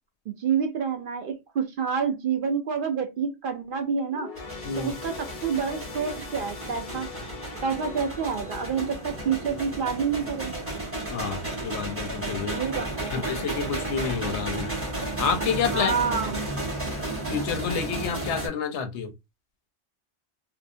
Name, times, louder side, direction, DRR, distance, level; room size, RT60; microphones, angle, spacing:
voice 1, 0.3-4.3 4.8-7.1 7.6-10.6 12.4-13.1 15.7-16.4, right 6 dB, 60° right, 0.7 m, -28 dB
sound 1, 4.1-11.8 12.2-12.4 13.3-13.4, left 5 dB, 55° left, 0.7 m, -43 dB
sound 2, 4.4-18.5, right 2 dB, 15° right, 0.9 m, -33 dB
voice 2, 4.6-5.0 11.1-12.6 13.1-14.7 15.2-15.9 17.3-19.1, left 6 dB, 85° left, 0.9 m, -29 dB
2.7 x 2.0 x 2.5 m
omnidirectional pair, 1.1 m